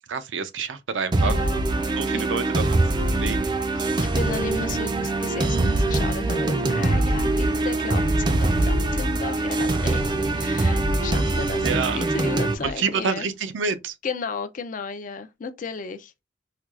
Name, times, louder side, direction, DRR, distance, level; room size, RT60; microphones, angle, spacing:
voice 1, 0.1-1.3 2.0-2.8 3.1-3.6 9.8-10.0 11.6-12.0 12.6-13.9, right 5 dB, 80° right, 0.5 m, -28 dB
sound 1, 1.1-12.5, right 2 dB, 25° right, 0.4 m, -23 dB
voice 2, 1.2-2.2 3.7-13.3 14.0-16.2, left 5 dB, 45° left, 0.4 m, -34 dB
sound 2, 3.3-13.5 13.8-13.9, equal, 90° left, 0.9 m, -42 dB
4.4 x 2.3 x 2.4 m
head